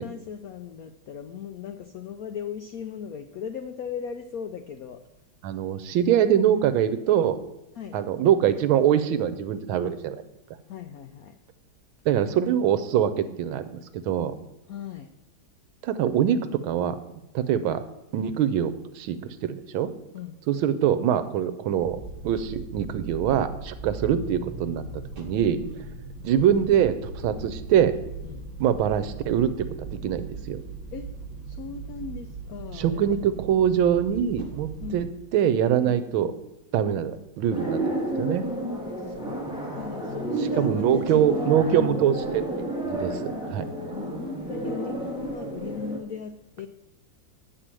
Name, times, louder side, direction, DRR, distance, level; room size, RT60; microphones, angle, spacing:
voice 1, 0.0-5.0 7.8-8.0 10.7-11.3 14.7-15.1 20.1-20.4 25.6-25.8 28.2-28.4 30.9-31.1 31.5-33.2 34.8-35.0 35.8-36.0 38.9-42.0 43.8-46.7, left 7 dB, 85° left, 8 dB, 0.7 m, -37 dB
voice 2, 5.4-7.4 7.9-10.2 12.0-14.3 15.8-16.4 16.6-17.0 17.3-17.8 18.1-19.9 20.5-24.8 25.2-25.6 26.2-27.9 28.6-29.5 29.8-30.6 32.7-35.1 35.3-36.3 36.7-38.4 40.6-42.4 42.8-43.6, right 9 dB, 80° right, 11 dB, 1.5 m, -23 dB
sound 1, 21.8-34.9, right 3 dB, 40° right, 1.6 m, -39 dB
sound 2, 37.5-46.0, right 1 dB, ahead, 1.6 m, -31 dB
8.6 x 4.9 x 7.5 m, 0.94 s
omnidirectional pair, 2.2 m